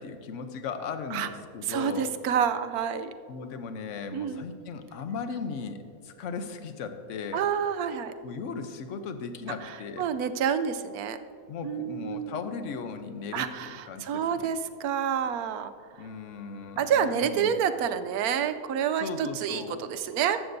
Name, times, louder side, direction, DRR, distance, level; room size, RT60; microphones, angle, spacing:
voice 1, 0.0-2.1 3.3-7.5 8.2-10.1 11.5-14.5 16.0-17.5 19.0-19.8, left 5 dB, 60° left, 8 dB, 1.0 m, -37 dB
voice 2, 1.7-3.1 4.1-4.4 7.3-8.1 10.0-11.2 11.6-12.4 13.3-15.7 16.8-20.4, right 8 dB, 80° right, 11 dB, 1.1 m, -28 dB
14.5 x 12.0 x 2.7 m, 2.3 s
omnidirectional pair, 1.6 m